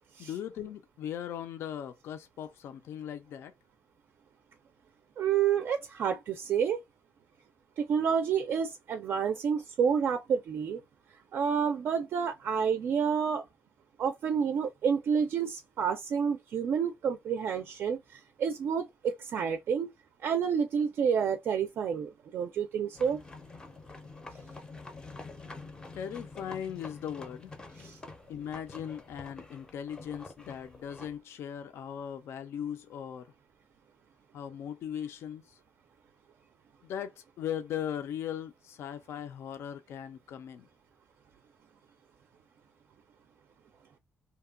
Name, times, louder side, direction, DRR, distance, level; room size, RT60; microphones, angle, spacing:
voice 1, 0.2-3.5 25.9-27.5 28.3-33.3 34.3-35.6 36.8-40.7, left 9 dB, 70° left, 0.4 m, -39 dB
voice 2, 5.2-6.8 7.8-10.8 11.3-13.5 14.0-19.9 20.2-23.2 27.8-28.0, right 7 dB, 55° right, 0.3 m, -29 dB
sound 1, 22.9-31.2, left 3 dB, 15° left, 0.5 m, -47 dB
2.8 x 2.2 x 2.3 m
cardioid pair, 160°, 4 cm